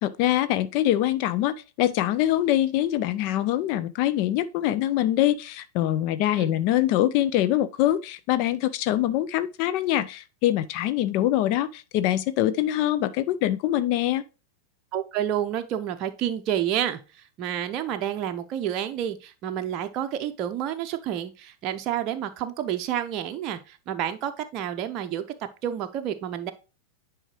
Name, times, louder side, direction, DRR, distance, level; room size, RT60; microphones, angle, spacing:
voice 1, 0.0-14.2, left 13 dB, 45° left, 0.4 m, -24 dB
voice 2, 14.9-26.5, right 10 dB, 35° right, 0.6 m, -29 dB
9.9 x 4.8 x 3.0 m
figure-of-eight pair, 90°, 0 cm